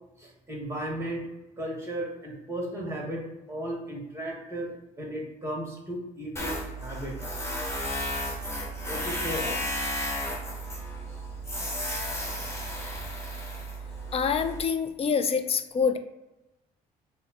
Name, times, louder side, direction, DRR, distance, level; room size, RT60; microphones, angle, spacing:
voice 1, 0.2-1.2 1.6-4.7 5.0-7.2 8.9-9.6, right 1 dB, 15° right, -1 dB, 1.4 m, -35 dB
Tools, 6.4-14.6, equal, 15° left, 1.1 m, -33 dB
voice 2, 14.1-16.0, left 6 dB, 35° left, 10 dB, 0.4 m, -26 dB
3.7 x 2.1 x 2.9 m, 0.97 s
hypercardioid pair, 60°, 18 cm